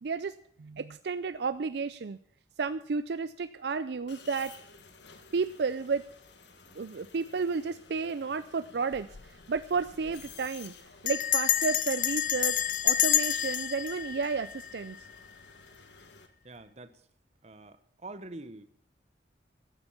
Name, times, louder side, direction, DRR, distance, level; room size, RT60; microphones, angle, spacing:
voice 1, 0.0-2.2 2.6-4.6 5.3-6.0 6.7-10.7 11.0-15.0, right 4 dB, 60° right, 14 dB, 0.4 m, -32 dB
sound 1, 4.1-16.3, left 5 dB, 70° left, 1.5 m, -53 dB
Bell, 8.9-9.3 9.6-9.7 9.9-10.3 11.1-15.1, left 11 dB, 45° left, 0.5 m, -29 dB
voice 2, 16.4-17.0 17.4-18.7, right 2 dB, 35° right, 12 dB, 0.9 m, -45 dB
14.5 x 8.1 x 7.1 m, 0.63 s
head